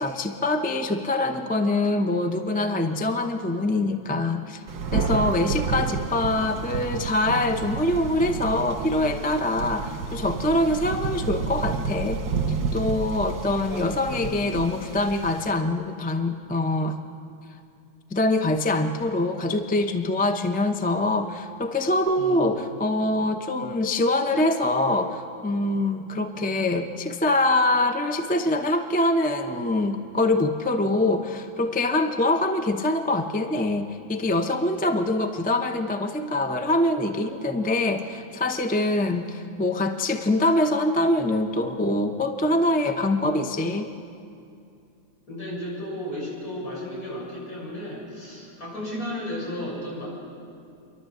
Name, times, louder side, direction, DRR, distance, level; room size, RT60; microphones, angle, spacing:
voice 1, 0.0-4.6 4.9-12.2 12.7-17.0 18.1-43.9, left 2 dB, 10° left, 6 dB, 0.5 m, -24 dB
Thunder, 4.7-15.4, right 5 dB, 75° right, 1.7 m, -30 dB
voice 2, 13.7-14.4 22.2-22.4 45.3-50.1, left 1 dB, 65° left, -6 dB, 7.8 m, -34 dB
29.0 x 12.0 x 7.9 m, 2.5 s
omnidirectional pair, 1.7 m